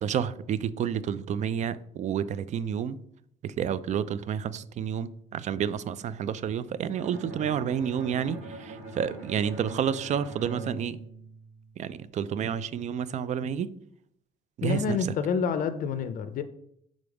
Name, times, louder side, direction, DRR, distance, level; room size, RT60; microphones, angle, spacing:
voice 1, 0.0-3.0 3.4-11.0 11.8-13.7 14.6-15.0, right 8 dB, 45° right, 0.4 m, -30 dB
Bowed string instrument, 6.9-11.9, right 3 dB, 75° right, 1.8 m, -42 dB
voice 2, 14.6-16.4, left 6 dB, 55° left, 0.5 m, -28 dB
5.2 x 3.8 x 4.8 m
cardioid pair, 110°, 17 cm